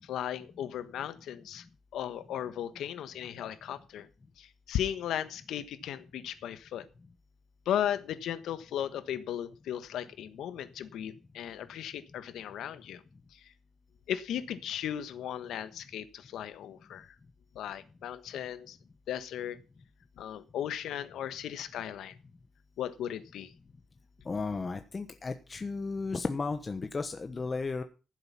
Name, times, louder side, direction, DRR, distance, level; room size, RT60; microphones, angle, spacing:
voice 1, 0.0-1.6 1.9-4.1 4.4-6.8 7.6-13.0 13.3-13.5 14.1-17.1 17.5-18.8 19.1-19.6 20.2-22.2 22.8-23.5, left 10 dB, 85° left, 12 dB, 1.3 m, -36 dB
voice 2, 24.3-27.8, left 4 dB, 25° left, 7 dB, 1.1 m, -34 dB
15.0 x 8.0 x 5.7 m, 0.33 s
cardioid pair, 140°, 0 cm